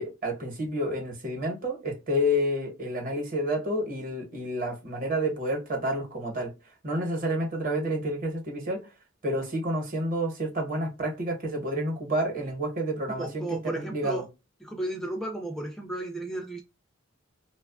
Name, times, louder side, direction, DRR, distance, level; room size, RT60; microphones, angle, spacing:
voice 1, 0.0-6.5 6.8-8.8 9.2-14.2, equal, 45° right, 0.9 m, -29 dB
voice 2, 13.1-14.3 14.6-16.6, right 1 dB, ahead, 0.3 m, -34 dB
2.9 x 2.2 x 2.3 m
head